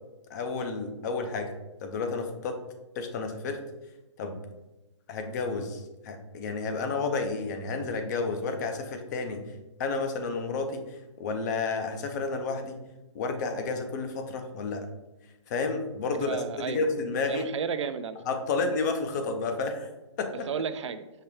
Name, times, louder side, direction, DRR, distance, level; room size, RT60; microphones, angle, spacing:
voice 1, 0.3-1.5 1.8-2.6 3.0-3.6 4.2-4.4 5.1-9.4 9.8-10.8 11.2-12.8 13.1-14.9 15.5-17.4 18.3-19.9 20.2-20.5, left 4 dB, 35° left, 6 dB, 0.6 m, -31 dB
voice 2, 16.1-16.8 17.3-18.2 20.5-21.0, right 6 dB, 70° right, 11 dB, 0.4 m, -32 dB
5.5 x 2.2 x 3.4 m, 1.0 s
hypercardioid pair, 140°, 16 cm